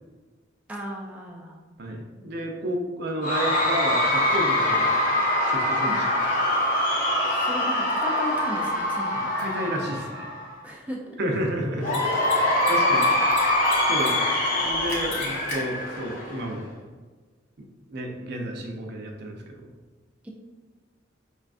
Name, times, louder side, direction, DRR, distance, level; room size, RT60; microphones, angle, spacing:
voice 1, 0.7-1.6 5.9-6.0 7.3-9.3 10.6-11.3 13.2-13.3 20.2-20.3, equal, 5° right, -3 dB, 0.3 m, -36 dB
voice 2, 1.8-5.0 5.5-6.0 9.3-10.2 11.2-13.1 13.9-14.2 14.6-16.7 17.9-19.7, equal, 60° right, 2 dB, 0.5 m, -31 dB
Cheering / Crowd, 3.2-10.5 11.8-16.5, left 1 dB, 45° left, 0.6 m, -24 dB
Mechanisms, 9.4-9.5 11.8-12.0 12.2-12.3 12.6-13.4 13.6-14.1 14.4-14.5 14.9-15.6, left 2 dB, 70° left, 1.0 m, -35 dB
5.0 x 2.3 x 2.5 m, 1.4 s
head